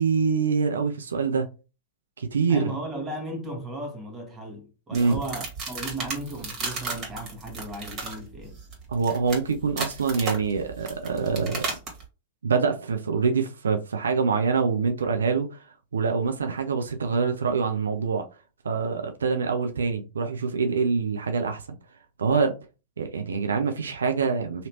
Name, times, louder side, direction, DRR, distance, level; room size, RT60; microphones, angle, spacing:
voice 1, 0.0-1.5 2.2-2.7 4.9-5.2 8.9-11.7 12.4-15.6 15.9-18.3 18.6-21.6 22.2-22.5 23.0-24.7, right 5 dB, 85° right, 0.5 m, -25 dB
voice 2, 2.5-8.6, right 1 dB, 20° right, 1.3 m, -36 dB
sound 1, 4.9-12.0, right 3 dB, 35° right, 1.7 m, -34 dB
3.1 x 2.8 x 2.7 m
hypercardioid pair, 105°, 0 cm